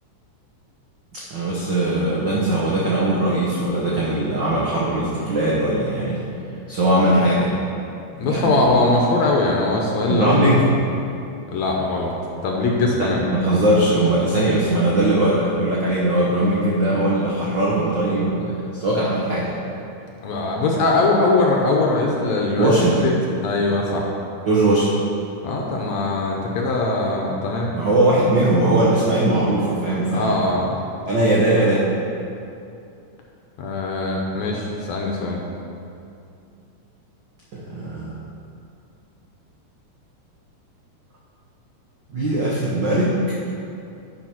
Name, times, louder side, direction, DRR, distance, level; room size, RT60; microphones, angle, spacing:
voice 1, 1.3-6.2 6.7-7.5 8.2-8.7 10.1-10.7 13.0-19.5 22.6-23.1 24.5-24.9 27.7-30.3 31.1-31.9 37.5-38.2 42.1-43.2, right 1 dB, 85° right, -6 dB, 1.0 m, -20 dB
voice 2, 8.2-10.7 11.5-12.1 12.4-13.2 20.2-22.7 23.0-23.1 23.4-24.1 25.4-27.7 30.1-30.8 33.6-35.4, left 2 dB, 70° left, 0 dB, 1.8 m, -21 dB
9.8 x 4.8 x 5.9 m, 2.6 s
omnidirectional pair, 3.7 m